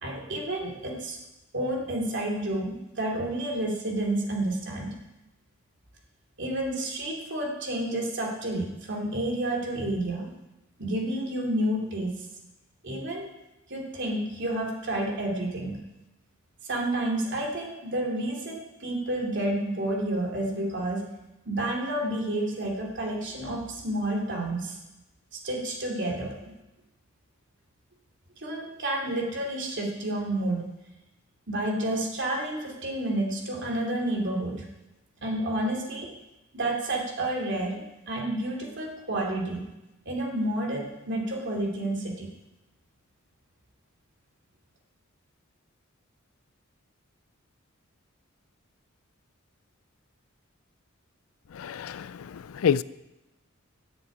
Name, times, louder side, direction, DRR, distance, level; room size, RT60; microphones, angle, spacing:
voice 1, 0.0-1.2 1.5-4.9 6.4-10.3 10.8-12.2 12.8-13.3 13.7-15.8 16.6-21.0 21.4-24.8 25.3-26.5 28.4-30.6 31.5-34.6 35.2-36.1 36.5-39.6 40.0-42.3, right 1 dB, 60° right, 2.9 m, -30 dB
voice 2, 51.5-52.8, left 7 dB, 85° left, 0.4 m, -28 dB
10.5 x 7.0 x 8.8 m
head